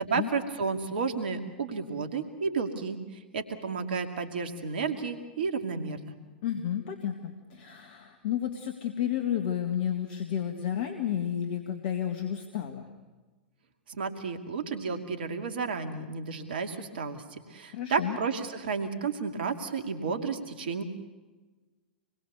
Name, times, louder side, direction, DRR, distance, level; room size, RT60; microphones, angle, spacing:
voice 1, 0.0-6.1 13.9-20.8, right 5 dB, 70° right, 6 dB, 2.5 m, -32 dB
voice 2, 6.4-12.9 17.7-18.2, left 10 dB, 60° left, 5 dB, 2.1 m, -31 dB
27.5 x 21.5 x 7.0 m, 1.2 s
figure-of-eight pair, 100°, 6 cm